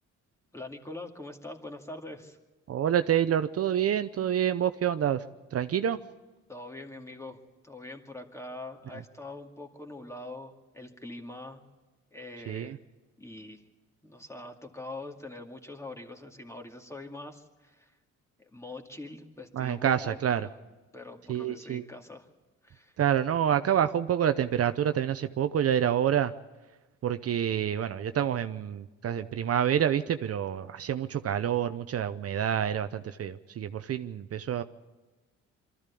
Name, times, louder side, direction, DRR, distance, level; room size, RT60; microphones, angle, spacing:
voice 1, 0.5-2.4 6.5-7.4 7.6-11.6 12.1-12.8 13.2-13.6 14.0-17.9 18.4-20.5 20.9-22.3 22.6-23.0, left 2 dB, 10° left, 3 dB, 2.3 m, -43 dB
voice 2, 2.7-5.3 5.5-6.0 8.9-9.0 12.5-12.8 19.5-20.5 21.3-21.8 23.0-26.3 27.0-34.6, right 9 dB, 50° right, 10 dB, 0.7 m, -27 dB
23.5 x 14.0 x 8.4 m, 1.2 s
cardioid pair, 90°, 30 cm